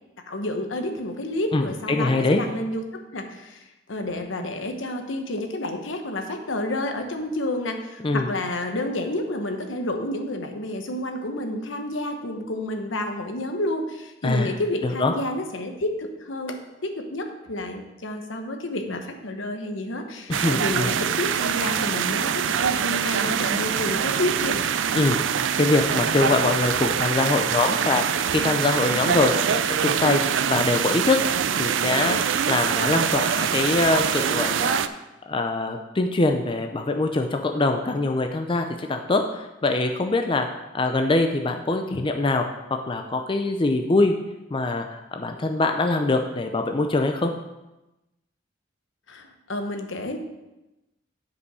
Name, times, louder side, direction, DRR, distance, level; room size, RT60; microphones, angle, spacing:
voice 1, 0.3-2.8 3.1-16.6 16.8-24.7 49.1-50.2, left 1 dB, 75° left, 5 dB, 1.1 m, -30 dB
voice 2, 1.9-2.4 8.0-8.3 14.2-14.6 14.8-15.1 20.3-20.9 24.9-25.2 25.6-30.2 30.5-31.2 31.6-34.8 35.3-40.5 40.7-42.4 42.7-44.1 44.5-47.3, left 2 dB, 25° left, 4 dB, 0.5 m, -23 dB
sound 1, 20.3-34.9, right 8 dB, 70° right, 0.4 m, -24 dB
9.6 x 5.3 x 4.8 m, 1.0 s
head